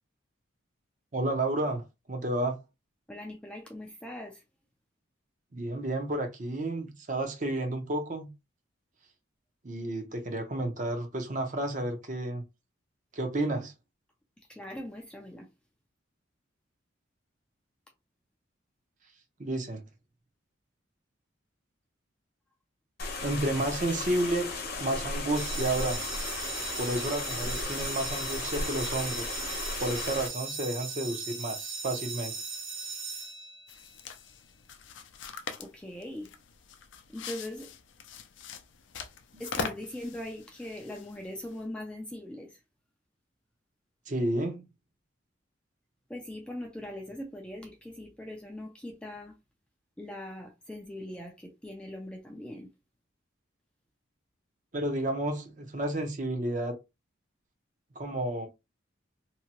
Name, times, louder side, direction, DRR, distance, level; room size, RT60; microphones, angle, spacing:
voice 1, 1.1-2.6 5.5-8.3 9.6-12.4 13.1-13.7 19.4-19.8 23.2-24.5 24.8-26.0 26.8-29.3 29.8-32.3 39.3-39.4 44.1-44.6 54.7-56.8 57.9-58.5, right 1 dB, 40° right, 0.7 m, -31 dB
voice 2, 3.1-4.4 14.5-15.5 35.6-36.3 37.1-37.7 39.4-42.6 46.1-49.3 50.0-52.7, left 1 dB, 5° left, 0.4 m, -41 dB
sound 1, 23.0-30.3, left 3 dB, 50° left, 0.8 m, -35 dB
sound 2, 25.3-34.0, right 4 dB, 80° right, 1.0 m, -38 dB
sound 3, 33.7-41.6, left 5 dB, 70° left, 0.4 m, -42 dB
2.8 x 2.2 x 2.9 m
head